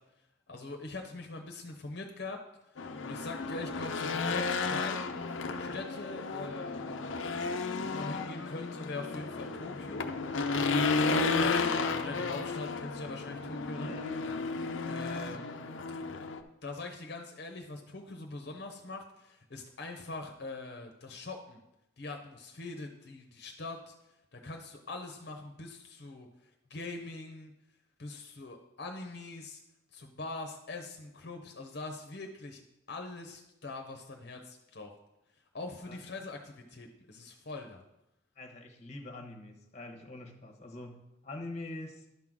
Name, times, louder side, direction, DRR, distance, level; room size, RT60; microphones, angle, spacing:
voice 1, 0.5-2.4 2.7-5.0 5.6-7.1 7.8-10.1 11.3-13.9 14.9-15.7 16.6-21.6 22.0-23.9 24.3-26.3 26.7-27.5 28.0-29.6 29.9-32.6 32.9-34.9 35.5-37.8, left 3 dB, 55° left, 3 dB, 0.8 m, -43 dB
Race car auto racing / Engine, 2.8-16.4, left 4 dB, 75° left, 0.6 m, -33 dB
voice 2, 13.7-14.7 35.9-36.0 38.3-42.1, left 2 dB, 35° left, 3 dB, 1.0 m, -45 dB
11.0 x 3.8 x 6.1 m, 0.87 s
head